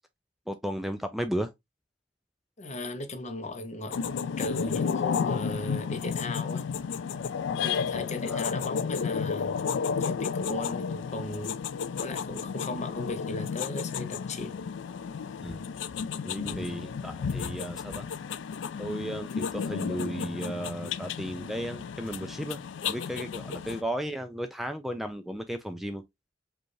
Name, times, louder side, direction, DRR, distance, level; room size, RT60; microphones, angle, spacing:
voice 1, 0.5-1.5 8.3-8.4 15.4-15.7 16.3-18.0 18.8-26.0, equal, ahead, 0.4 m, -34 dB
voice 2, 2.6-6.7 7.5-9.6 10.0-11.6 12.0-14.6 16.4-16.7 23.5-23.6, left 2 dB, 40° left, 0.7 m, -37 dB
sound 1, 3.9-23.8, left 6 dB, 80° left, 0.4 m, -32 dB
5.0 x 2.4 x 3.1 m
head